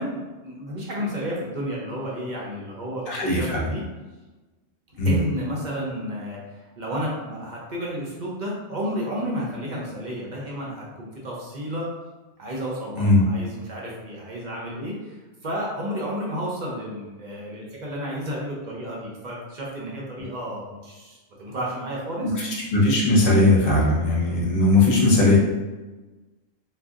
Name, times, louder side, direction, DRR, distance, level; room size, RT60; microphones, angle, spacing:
voice 1, 0.0-3.0 3.3-3.8 5.1-11.9 12.4-15.2 15.4-22.3, equal, 45° right, -4 dB, 0.7 m, -31 dB
voice 2, 3.1-3.7 5.0-5.1 12.9-13.2 22.2-25.4, left 2 dB, 50° left, -4 dB, 0.9 m, -19 dB
2.6 x 2.4 x 3.6 m, 1.2 s
omnidirectional pair, 1.4 m